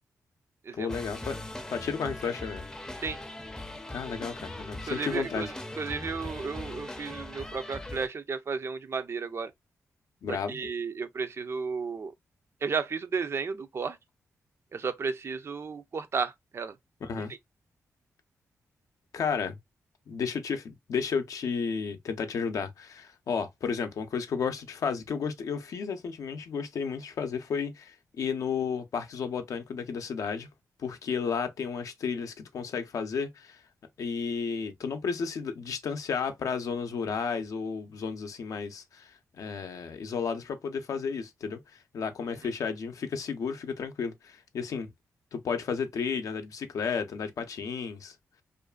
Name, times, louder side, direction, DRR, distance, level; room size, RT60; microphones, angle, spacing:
voice 1, 0.7-1.4 1.7-2.7 3.9-5.5 10.2-10.6 17.0-17.3 19.1-19.6 20.1-30.5 30.8-33.6 34.0-41.6 41.9-44.9 45.3-48.1, left 6 dB, 70° left, 0.5 m, -32 dB
sound 1, 0.9-8.1, left 1 dB, 10° left, 0.5 m, -40 dB
voice 2, 4.9-9.5 10.3-12.1 12.6-14.0 14.7-16.7, right 5 dB, 50° right, 0.4 m, -33 dB
2.5 x 2.4 x 2.2 m
cardioid pair, 60°, 6 cm